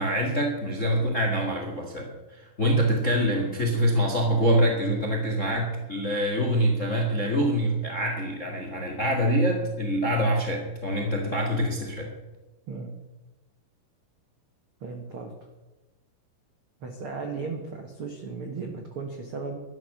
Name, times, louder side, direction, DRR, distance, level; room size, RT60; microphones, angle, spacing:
voice 1, 0.0-12.1, equal, 40° left, 2 dB, 1.0 m, -25 dB
voice 2, 14.8-15.3 16.8-19.6, right 4 dB, 80° right, 3 dB, 1.2 m, -36 dB
13.0 x 11.0 x 6.6 m, 1.1 s
omnidirectional pair, 4.8 m